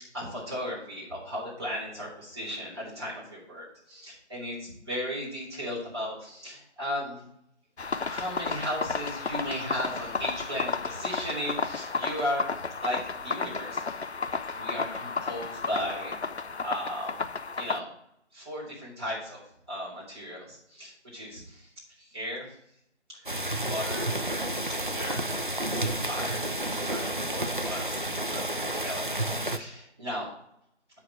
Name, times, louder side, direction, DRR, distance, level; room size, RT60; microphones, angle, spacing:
voice 1, 0.1-7.2 8.1-14.0 14.5-16.1 16.6-17.2 17.6-17.9 18.3-19.4 19.7-21.7 22.0-22.5 23.1-23.2 23.6-24.3 24.6-25.4 25.8-26.4 26.7-28.0 28.3-30.3, equal, 20° right, -7 dB, 3.7 m, -36 dB
sound 1, 7.8-17.8, left 4 dB, 65° left, 0.6 m, -33 dB
sound 2, 23.3-29.6, right 1 dB, 45° right, 0.6 m, -31 dB
12.5 x 5.1 x 4.2 m, 0.75 s
figure-of-eight pair, 170°, 36 cm